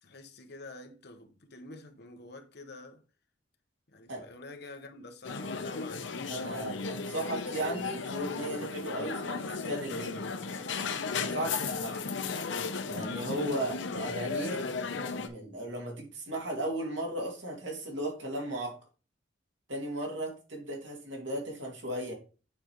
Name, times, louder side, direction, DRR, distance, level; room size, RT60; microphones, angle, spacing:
voice 1, 0.0-3.0 3.9-6.1 11.9-12.1, left 2 dB, 60° left, 1.1 m, -47 dB
sound 1, 5.2-15.3, left 4 dB, 80° left, 0.7 m, -35 dB
voice 2, 6.3-10.2 11.1-12.0 12.9-14.6 15.2-18.8 19.7-22.1, right 1 dB, 75° right, 2.5 m, -36 dB
8.7 x 5.0 x 3.1 m
head